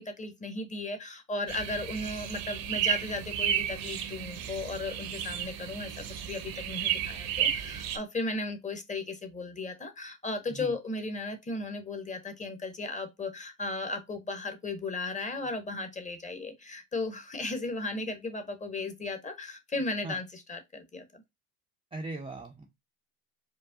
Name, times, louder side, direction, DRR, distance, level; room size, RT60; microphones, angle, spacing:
voice 1, 0.0-21.2, left 2 dB, 15° left, 0.8 m, -36 dB
sound 1, 1.5-8.0, right 10 dB, 45° right, 0.8 m, -33 dB
voice 2, 21.9-22.6, right 2 dB, 10° right, 0.5 m, -39 dB
4.7 x 2.3 x 2.6 m
hypercardioid pair, 70°, 46 cm